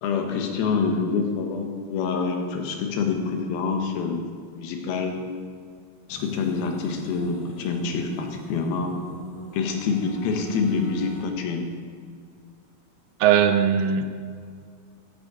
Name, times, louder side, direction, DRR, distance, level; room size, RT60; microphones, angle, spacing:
voice 1, 0.0-5.2 6.1-9.0 9.5-11.7, left 5 dB, 85° left, 3 dB, 2.9 m, -26 dB
sound 1, 6.1-11.2, right 2 dB, 50° left, 2.5 m, -41 dB
voice 2, 13.2-14.1, right 8 dB, 80° right, 9 dB, 2.3 m, -19 dB
14.0 x 6.6 x 4.8 m, 2.1 s
omnidirectional pair, 4.2 m